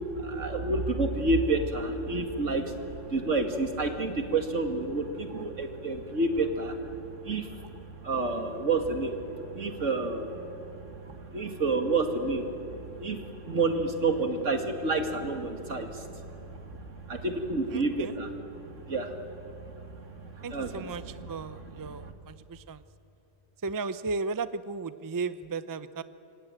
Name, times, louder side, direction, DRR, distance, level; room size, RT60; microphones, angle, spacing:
voice 1, 0.0-22.1, right 3 dB, 80° right, 5 dB, 2.5 m, -30 dB
voice 2, 17.7-18.1 20.4-22.8 23.6-26.0, right 4 dB, 25° right, 13 dB, 0.5 m, -35 dB
27.0 x 24.0 x 9.0 m, 2.8 s
omnidirectional pair, 1.3 m